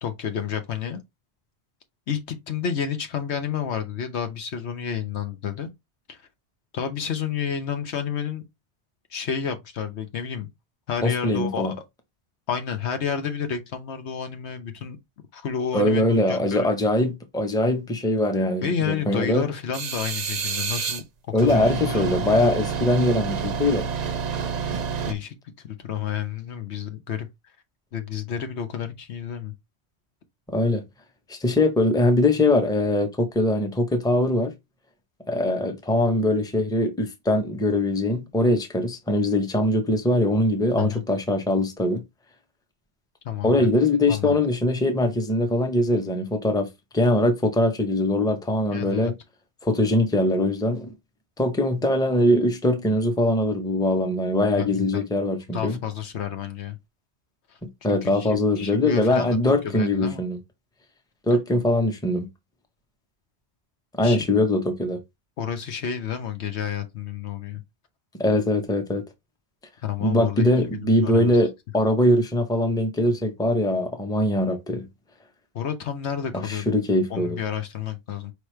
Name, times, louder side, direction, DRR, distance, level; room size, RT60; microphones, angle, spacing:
voice 1, 0.0-1.0 2.1-5.7 6.1-6.2 6.7-8.4 9.1-10.5 10.9-11.8 12.5-15.0 15.3-16.7 18.6-21.0 21.4-22.3 25.0-25.4 25.6-27.3 27.9-29.5 40.8-41.0 43.2-43.7 44.1-44.4 48.7-49.1 54.6-55.1 55.5-56.8 57.5-57.6 57.9-60.2 64.0-64.2 65.4-67.6 69.8-71.4 75.5-76.7 77.1-78.3, left 7 dB, 85° left, 1.2 m, -30 dB
voice 2, 11.0-11.7 15.7-19.5 21.3-23.9 30.5-30.8 31.3-34.5 35.3-42.0 43.4-46.7 46.9-49.1 49.6-50.9 51.4-55.8 57.6-60.4 61.3-62.3 64.0-65.0 68.1-69.0 70.0-74.9 76.3-77.4, left 1 dB, 5° left, 0.7 m, -22 dB
sound 1, 19.7-21.0 21.4-25.1, right 6 dB, 50° right, 0.6 m, -28 dB
4.9 x 3.2 x 3.2 m
omnidirectional pair, 1.1 m